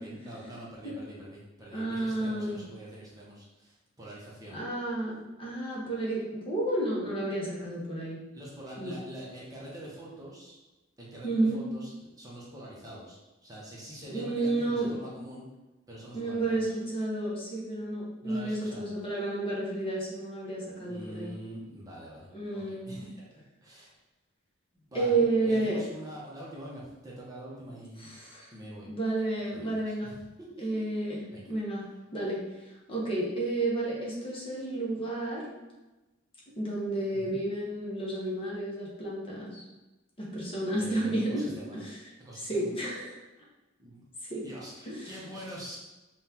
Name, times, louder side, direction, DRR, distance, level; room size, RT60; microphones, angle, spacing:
voice 1, 0.0-4.6 8.3-10.6 11.0-15.4 15.9-16.7 18.2-18.8 20.8-22.3 22.5-23.9 24.7-28.1 28.5-28.9 29.5-30.2 30.5-30.7 31.3-31.5 37.1-37.4 40.7-41.8 42.2-42.7 43.8-44.0 44.4-45.8, right 1 dB, 20° right, -6 dB, 0.8 m, -45 dB
voice 2, 1.7-2.6 4.5-8.2 8.8-8.9 11.2-11.6 14.1-15.0 16.1-21.3 22.3-22.9 24.9-25.8 28.0-28.5 28.9-30.1 30.6-35.4 36.6-39.6 40.2-42.0 42.3-43.2 44.3-44.4 44.9-45.1, right 2 dB, 25° left, -4 dB, 0.9 m, -31 dB
5.6 x 2.3 x 2.8 m, 1.1 s
head